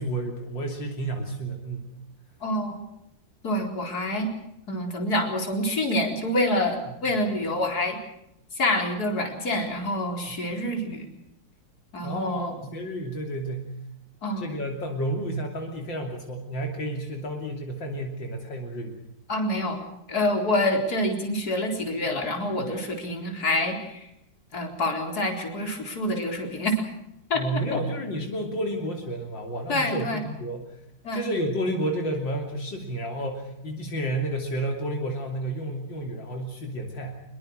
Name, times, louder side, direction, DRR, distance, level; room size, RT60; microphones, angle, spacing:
voice 1, 0.0-1.9 10.3-10.4 12.0-13.7 14.4-19.0 27.3-30.7 31.1-37.2, right 1 dB, 80° left, 2 dB, 3.7 m, -31 dB
voice 2, 2.4-2.8 3.4-4.3 4.7-8.0 8.5-11.1 11.9-12.5 14.2-14.5 19.3-19.8 20.1-24.1 24.5-26.9 27.3-27.8 29.7-30.2 31.0-31.2, left 1 dB, 55° left, 3 dB, 4.8 m, -27 dB
25.5 x 22.5 x 6.4 m, 0.81 s
omnidirectional pair, 2.0 m